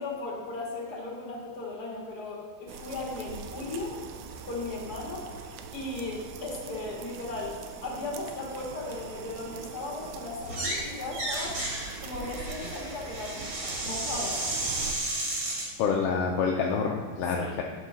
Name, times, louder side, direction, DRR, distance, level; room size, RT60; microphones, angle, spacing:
voice 1, 0.0-4.0 4.4-11.7 12.0-14.5 17.3-17.5, left 2 dB, 35° left, -3 dB, 2.1 m, -37 dB
sound 1, 2.7-15.0, right 6 dB, 85° right, 2.0 m, -42 dB
sound 2, 10.4-10.8 11.1-15.7, right 1 dB, 45° right, 3.3 m, -33 dB
voice 2, 15.8-17.6, left 5 dB, 75° left, 0 dB, 1.4 m, -27 dB
11.5 x 5.4 x 3.8 m, 1.5 s
omnidirectional pair, 3.4 m